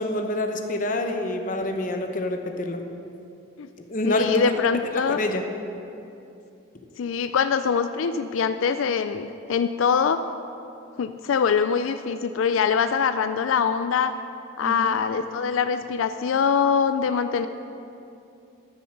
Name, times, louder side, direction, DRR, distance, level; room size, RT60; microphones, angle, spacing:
voice 1, 0.0-2.8 3.8-4.4 4.9-5.4 14.6-15.0, left 1 dB, 40° left, 4 dB, 0.9 m, -27 dB
voice 2, 4.0-5.2 7.0-10.2 11.0-14.1 14.6-17.5, left 6 dB, 85° left, 10 dB, 0.4 m, -23 dB
13.0 x 6.9 x 6.6 m, 2.7 s
head